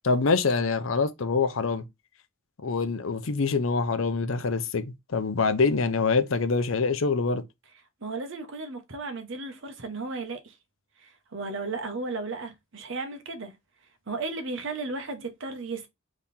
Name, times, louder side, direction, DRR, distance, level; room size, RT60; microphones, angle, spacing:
voice 1, 0.0-1.8 2.6-7.4, left 4 dB, 70° left, 0.6 m, -25 dB
voice 2, 8.0-10.6 11.0-13.5 14.1-15.9, right 3 dB, 60° right, 0.9 m, -34 dB
3.6 x 3.1 x 4.1 m
head